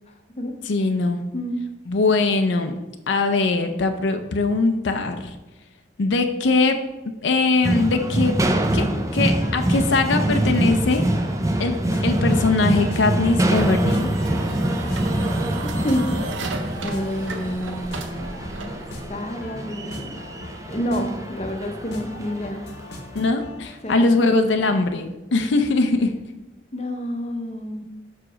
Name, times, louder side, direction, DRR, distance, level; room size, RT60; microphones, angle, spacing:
voice 1, 0.1-0.5 1.3-1.6 15.8-16.1 16.8-18.8 19.1-20.2 20.7-22.6 23.8-24.1 26.7-27.8, equal, 35° left, 4 dB, 0.7 m, -29 dB
voice 2, 0.6-1.2 1.9-2.7 3.1-5.4 6.0-6.8 7.2-8.4 8.7-8.9 9.1-11.0 11.6-14.2 23.1-26.1, left 3 dB, 80° left, 6 dB, 0.5 m, -21 dB
sound 1, 7.6-22.9, right 1 dB, 15° right, 0.4 m, -24 dB
sound 2, 9.3-23.6, left 1 dB, 60° left, 0.9 m, -40 dB
sound 3, 13.3-19.1, right 3 dB, 90° right, 0.7 m, -35 dB
5.9 x 4.9 x 4.9 m, 1.0 s
head